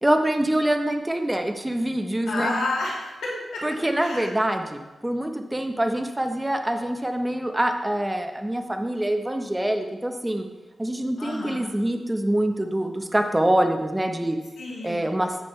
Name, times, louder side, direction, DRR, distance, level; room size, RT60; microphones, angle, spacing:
voice 1, 0.0-2.6 3.6-10.5 10.8-14.4 14.8-15.4, right 1 dB, 15° right, 5 dB, 0.8 m, -25 dB
voice 2, 2.3-4.3 11.2-11.6 14.6-15.0, left 2 dB, 85° left, -5 dB, 2.7 m, -30 dB
9.0 x 8.3 x 3.2 m, 1.1 s
cardioid pair, 60°, 0 cm